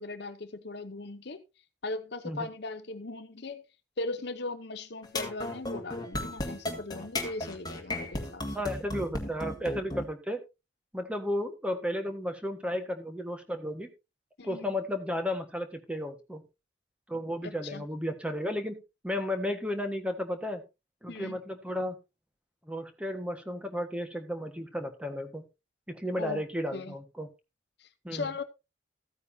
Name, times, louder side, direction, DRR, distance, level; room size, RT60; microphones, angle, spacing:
voice 1, 0.0-1.4 1.8-3.6 4.0-8.4 14.4-14.7 17.4-17.8 21.1-21.4 26.2-26.4 26.7-26.9 28.1-28.4, left 3 dB, 60° left, 0.9 m, -38 dB
sound 1, 5.0-10.1, left 1 dB, 20° left, 1.9 m, -34 dB
voice 2, 8.5-10.4 10.9-13.9 14.4-16.4 17.1-18.8 19.0-20.6 21.0-22.0 22.7-25.4 25.9-27.3 28.0-28.3, left 1 dB, 5° right, 1.5 m, -33 dB
14.5 x 9.2 x 2.8 m
head